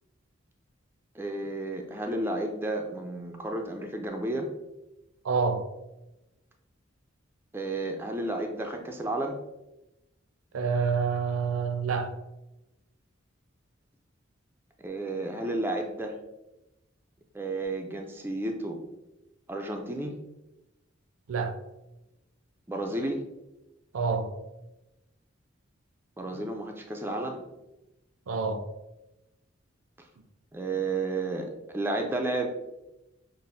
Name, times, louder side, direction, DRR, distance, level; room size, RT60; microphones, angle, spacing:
voice 1, 1.1-4.5 7.5-9.4 14.8-16.2 17.3-18.9 19.5-20.1 22.7-23.2 26.2-27.4 30.5-32.5, right 2 dB, 10° right, 0.3 m, -32 dB
voice 2, 5.2-5.7 10.5-12.1 21.3-21.5 23.9-24.3 28.3-28.6, right 5 dB, 90° right, 0.4 m, -27 dB
5.9 x 2.0 x 2.6 m
head